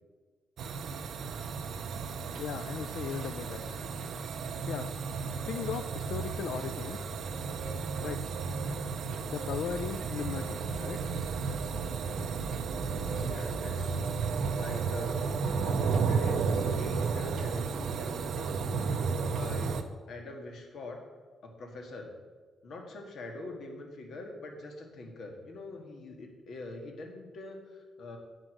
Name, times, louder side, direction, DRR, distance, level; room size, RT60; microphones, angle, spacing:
sound 1, 0.6-19.8, right 5 dB, 60° right, 0.7 m, -33 dB
voice 1, 2.4-3.8 4.4-4.9 5.3-7.1 8.0-8.2 9.3-11.0, left 8 dB, 70° left, 10 dB, 0.4 m, -38 dB
voice 2, 12.8-18.7 19.3-19.8 20.1-21.0 21.4-22.1 22.6-28.2, left 2 dB, 55° left, 2 dB, 1.8 m, -44 dB
8.7 x 7.8 x 6.4 m, 1.4 s
wide cardioid pair, 175°, 0 cm